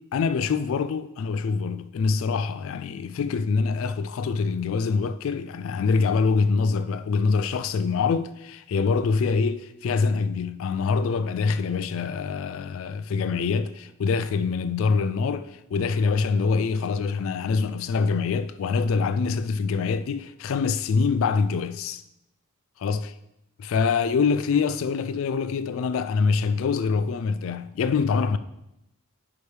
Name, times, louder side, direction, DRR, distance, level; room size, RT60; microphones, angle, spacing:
voice 1, 0.1-22.0 22.8-23.1 23.6-28.4, left 5 dB, 65° left, 0.3 m, -25 dB
9.5 x 5.0 x 3.2 m
head